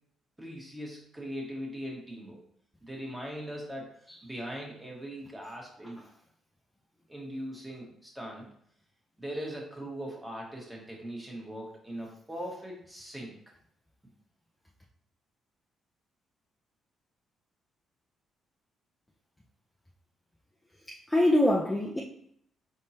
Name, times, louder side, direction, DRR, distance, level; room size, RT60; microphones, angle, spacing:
voice 1, 0.4-2.4 2.8-6.0 7.1-8.5 9.2-13.3, equal, 10° right, -2 dB, 1.5 m, -40 dB
voice 2, 20.9-22.0, left 1 dB, 10° left, -3 dB, 0.6 m, -24 dB
4.5 x 3.6 x 2.8 m, 0.69 s
cardioid pair, 90°, 0 cm